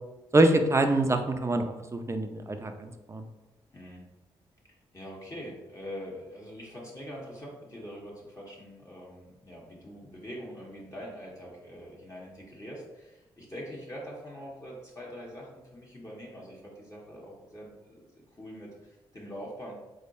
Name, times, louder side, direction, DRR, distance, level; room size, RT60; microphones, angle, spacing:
voice 1, 0.3-3.2, right 2 dB, 25° right, 6 dB, 0.5 m, -25 dB
voice 2, 3.7-4.0 4.9-18.0 18.4-19.7, equal, 30° left, -5 dB, 1.3 m, -43 dB
3.8 x 3.4 x 2.6 m, 1.0 s
supercardioid pair, 55°, 11 cm